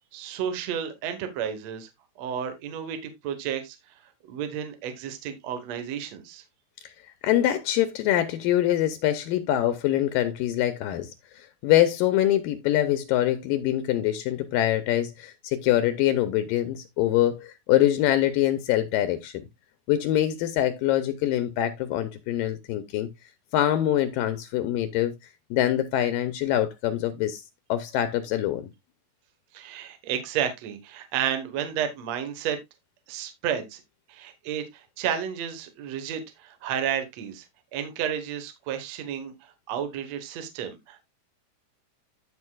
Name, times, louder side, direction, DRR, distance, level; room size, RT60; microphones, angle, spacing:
voice 1, 0.1-1.9 2.2-3.8 4.3-6.4 29.5-32.6 33.1-33.8 34.1-37.5 37.7-41.0, right 9 dB, 60° right, 2.0 m, -32 dB
voice 2, 7.2-19.4 19.9-23.1 23.5-25.1 25.5-27.4 27.7-28.6, left 13 dB, 80° left, 2.3 m, -24 dB
14.5 x 5.2 x 2.3 m
omnidirectional pair, 4.2 m